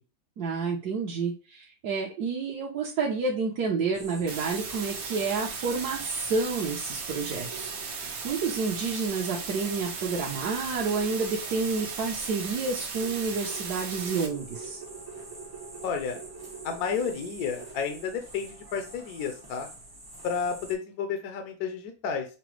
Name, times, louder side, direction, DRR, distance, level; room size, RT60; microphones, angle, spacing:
voice 1, 0.4-14.8, right 4 dB, 65° right, -3 dB, 1.1 m, -30 dB
sound 1, 3.9-20.7, right 3 dB, 25° right, 0.4 m, -45 dB
sound 2, 4.3-14.3, right 5 dB, 85° right, 1.5 m, -37 dB
voice 2, 15.8-16.2 16.6-19.7 20.2-22.3, left 6 dB, 65° left, 6 dB, 1.0 m, -31 dB
5.9 x 2.1 x 3.0 m, 0.32 s
omnidirectional pair, 2.1 m